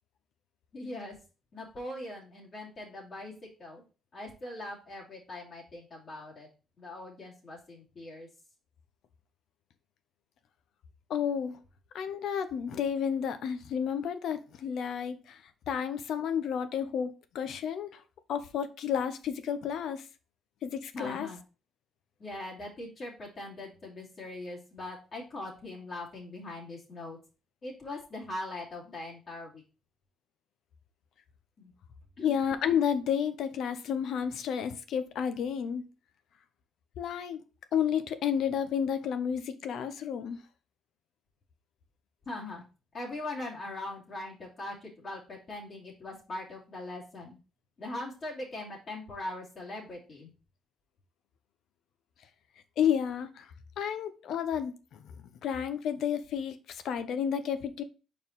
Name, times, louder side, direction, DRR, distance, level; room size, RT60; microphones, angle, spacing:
voice 1, 0.7-1.2 1.5-3.8 4.1-6.5 6.8-8.3 20.9-21.4 22.2-27.2 27.6-29.6 31.6-31.7 32.2-32.4 42.3-42.6 42.9-47.4 47.8-50.3, left 2 dB, 50° left, 2.5 m, -41 dB
voice 2, 11.1-11.6 11.9-15.4 15.7-18.0 18.3-20.1 20.6-21.3 32.2-35.9 37.0-37.4 37.7-40.4 52.8-53.5 53.8-55.0 55.4-57.8, left 8 dB, 75° left, 0.8 m, -31 dB
5.4 x 4.5 x 4.0 m
cardioid pair, 90°, 0 cm